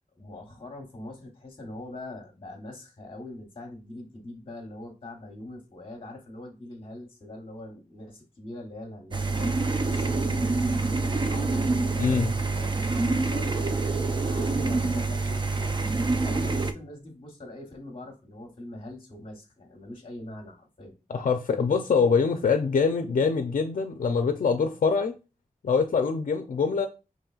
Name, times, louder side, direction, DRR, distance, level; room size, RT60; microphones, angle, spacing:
voice 1, 0.1-13.9 14.2-21.0, left 1 dB, 40° left, 1.1 m, -42 dB
sound 1, 9.1-16.7, right 3 dB, 35° right, 0.4 m, -26 dB
voice 2, 12.0-12.3 21.1-25.1 25.6-26.9, left 5 dB, 70° left, 0.5 m, -24 dB
5.3 x 3.0 x 2.3 m
wide cardioid pair, 85°, 14 cm